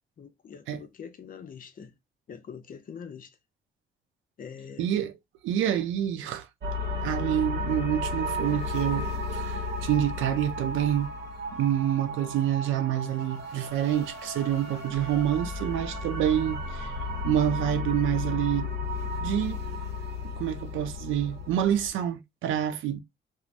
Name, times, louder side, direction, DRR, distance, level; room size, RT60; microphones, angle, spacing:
voice 1, 0.2-1.9 2.3-3.3 4.4-4.9, left 7 dB, 45° left, 0.6 m, -43 dB
voice 2, 4.8-5.1 5.4-6.5 7.0-11.1 11.6-16.9 17.2-18.7 19.2-19.6 20.4-23.0, right 11 dB, 85° right, 0.5 m, -27 dB
sound 1, 6.6-21.9, left 2 dB, 60° right, 0.8 m, -34 dB
3.2 x 2.0 x 2.4 m
cardioid pair, 90°, 20 cm